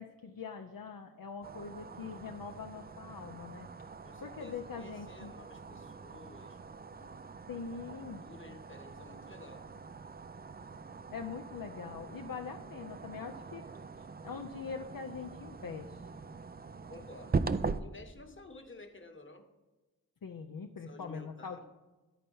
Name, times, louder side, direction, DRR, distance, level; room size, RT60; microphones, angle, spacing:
voice 1, 0.0-3.7 4.2-5.3 7.5-8.2 11.1-13.7 14.0-16.0 20.2-21.7, left 5 dB, 65° left, 3 dB, 0.6 m, -43 dB
sound 1, 1.4-17.8, right 4 dB, 25° right, 0.4 m, -42 dB
voice 2, 4.0-6.6 7.0-7.4 8.0-9.7 16.9-17.5 17.8-19.5 20.8-21.7, left 2 dB, 30° left, 5 dB, 1.1 m, -53 dB
11.0 x 4.3 x 5.4 m, 1.2 s
cardioid pair, 45°, 37 cm